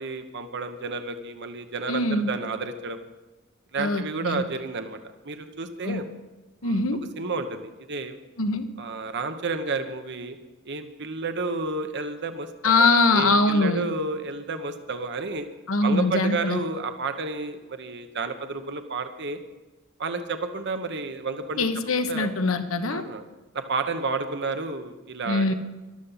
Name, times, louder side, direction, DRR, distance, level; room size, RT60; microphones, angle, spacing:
voice 1, 0.0-3.0 3.7-5.0 5.2-6.0 6.6-6.8 7.2-8.2 8.8-10.4 10.6-15.5 15.8-19.4 20.0-21.7 22.1-22.3 22.9-23.2 23.5-25.5, right 3 dB, 60° right, 8 dB, 1.1 m, -31 dB
voice 2, 1.9-2.3 3.8-4.4 5.8-6.0 6.6-7.0 8.4-8.7 12.6-13.8 15.7-16.6 21.6-23.0 25.3-25.5, left 2 dB, 75° left, 8 dB, 1.3 m, -22 dB
14.0 x 12.5 x 5.7 m, 1.1 s
head